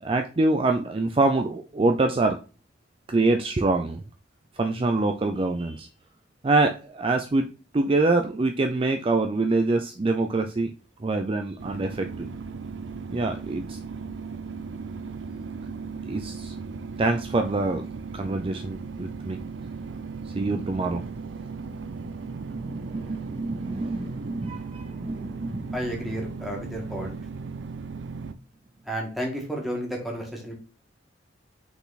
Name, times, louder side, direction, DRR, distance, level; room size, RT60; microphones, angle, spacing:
voice 1, 0.0-2.4 3.1-4.0 4.6-5.9 6.4-12.3 13.1-13.8 16.1-16.5 17.0-17.8 18.1-19.4 20.2-21.2 21.6-25.8, right 2 dB, 30° right, 5 dB, 0.4 m, -25 dB
sound 1, 11.6-28.3, right 4 dB, 80° right, 0.5 m, -37 dB
voice 2, 25.7-27.2 28.9-30.5, equal, ahead, -1 dB, 1.8 m, -32 dB
5.6 x 4.2 x 4.1 m, 0.35 s
head